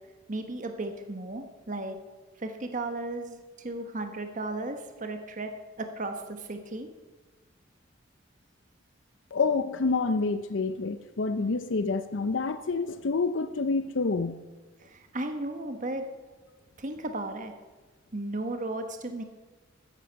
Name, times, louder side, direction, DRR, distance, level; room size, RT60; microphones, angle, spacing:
voice 1, 0.3-2.0 2.4-5.5 5.8-6.9 14.8-16.1 16.8-17.5 18.1-19.2, right 2 dB, 40° right, 6 dB, 1.3 m, -35 dB
voice 2, 9.3-14.4, left 4 dB, 65° left, 10 dB, 0.6 m, -28 dB
14.0 x 9.9 x 6.9 m, 1.3 s
head